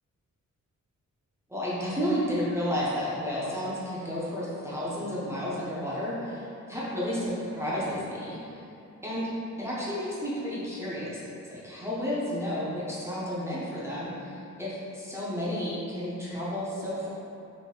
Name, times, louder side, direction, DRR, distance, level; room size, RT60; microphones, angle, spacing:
voice 1, 1.5-8.4 9.0-9.3 9.6-11.2 11.5-17.1, equal, 10° right, -9 dB, 0.8 m, -32 dB
4.2 x 3.3 x 3.8 m, 2.6 s
wide cardioid pair, 155°, 30 cm